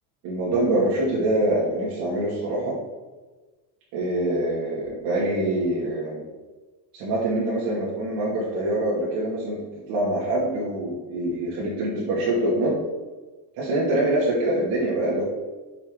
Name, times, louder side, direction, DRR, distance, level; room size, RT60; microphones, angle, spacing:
voice 1, 0.2-2.8 3.9-6.2 6.9-12.7 13.6-15.2, right 1 dB, 60° right, -6 dB, 2.5 m, -25 dB
8.1 x 6.6 x 3.9 m, 1.2 s
cardioid pair, 180°, 46 cm